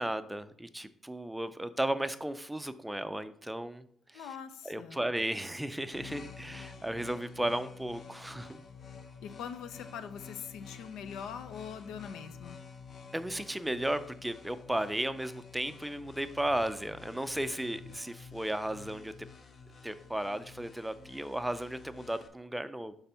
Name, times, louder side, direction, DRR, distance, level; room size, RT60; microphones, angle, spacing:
voice 1, 0.0-4.3 4.6-8.6 13.1-19.1 19.8-22.9, right 1 dB, 5° right, 12 dB, 0.4 m, -35 dB
voice 2, 4.1-5.0 9.2-12.6, left 7 dB, 85° left, 11 dB, 0.5 m, -42 dB
sound 1, 5.9-22.3, left 5 dB, 45° left, 0.7 m, -50 dB
5.8 x 3.4 x 5.5 m, 0.64 s
cardioid pair, 90°, 0 cm